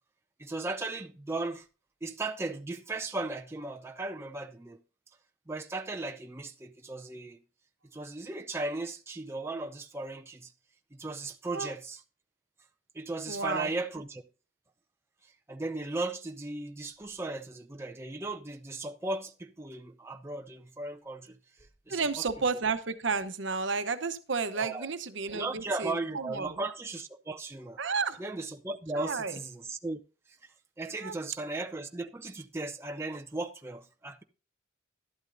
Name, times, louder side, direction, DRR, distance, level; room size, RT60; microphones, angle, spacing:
voice 1, 0.4-1.6 2.0-4.8 5.5-7.4 7.9-10.5 11.0-12.0 13.0-14.2 15.5-21.4 21.9-22.3 24.5-24.9 25.3-27.8 28.2-30.0 30.8-34.2, right 2 dB, 15° right, 0.5 m, -36 dB
voice 2, 13.3-13.7 21.9-26.5 27.8-28.2 28.9-29.4 31.0-31.2, right 4 dB, 65° right, 0.9 m, -32 dB
12.0 x 11.5 x 2.6 m
head